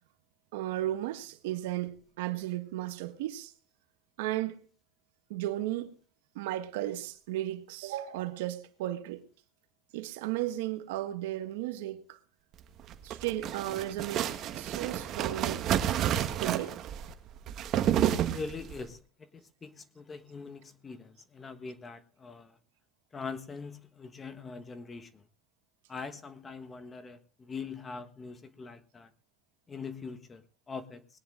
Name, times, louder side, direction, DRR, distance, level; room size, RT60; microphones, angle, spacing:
voice 1, 0.5-3.5 4.2-4.6 5.3-6.0 6.3-9.3 9.9-12.2 13.0-15.7 16.4-16.8, right 14 dB, 90° right, 1.4 m, -35 dB
sound 1, 12.8-18.8, right 10 dB, 45° right, 1.4 m, -30 dB
voice 2, 18.1-22.6 23.1-25.2 25.9-29.1 29.7-31.2, left 4 dB, 20° left, 1.3 m, -43 dB
21.0 x 9.9 x 3.7 m
supercardioid pair, 135°, 0 cm